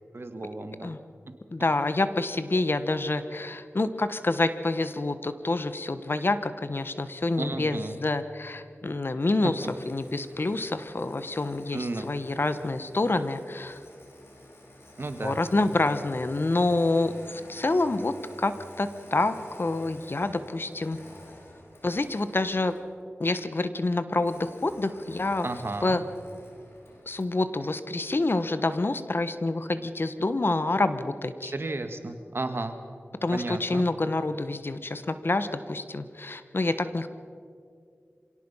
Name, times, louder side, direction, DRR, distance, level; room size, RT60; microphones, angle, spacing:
voice 1, 0.1-1.0 1.3-1.4 7.4-8.0 9.4-9.5 11.7-12.1 15.0-15.4 25.4-26.0 31.4-32.8 33.3-33.9, right 2 dB, 60° right, 7 dB, 1.8 m, -33 dB
voice 2, 1.5-13.8 15.2-21.0 21.8-22.7 23.2-25.5 25.8-26.0 27.1-31.5 33.2-37.1, left 2 dB, 55° left, 11 dB, 1.2 m, -27 dB
Engine starting, 9.5-22.9 24.2-27.4, left 1 dB, 70° left, 4.6 m, -50 dB
25.5 x 17.5 x 5.7 m, 2.3 s
wide cardioid pair, 45°, 5 cm